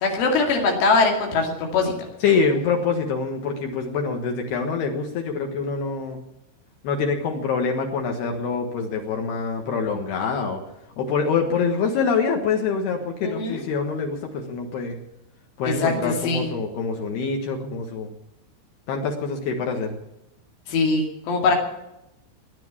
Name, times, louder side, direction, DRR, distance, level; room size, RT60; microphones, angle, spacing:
voice 1, 0.0-2.1 13.2-13.6 15.6-16.5 20.7-21.6, left 3 dB, 85° left, 1 dB, 5.0 m, -22 dB
voice 2, 2.2-6.2 6.8-10.6 11.0-15.0 15.6-18.1 18.9-19.9, left 5 dB, 65° left, 3 dB, 3.2 m, -25 dB
17.5 x 10.5 x 7.2 m, 0.89 s
omnidirectional pair, 5.5 m